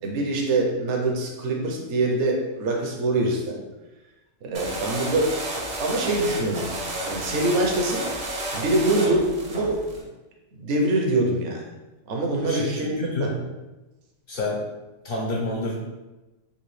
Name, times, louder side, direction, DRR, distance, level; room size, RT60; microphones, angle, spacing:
voice 1, 0.0-3.6 4.4-5.4 5.8-6.7 7.1-8.1 8.5-10.0 10.6-11.6 12.1-13.3, right 2 dB, 65° right, 0 dB, 0.9 m, -24 dB
sound 1, 4.5-10.0, right 1 dB, 45° right, 0.6 m, -31 dB
voice 2, 12.4-13.3 14.3-14.7 15.0-15.8, left 2 dB, 55° left, -2 dB, 0.7 m, -28 dB
4.0 x 2.5 x 3.1 m, 1.1 s
omnidirectional pair, 1.4 m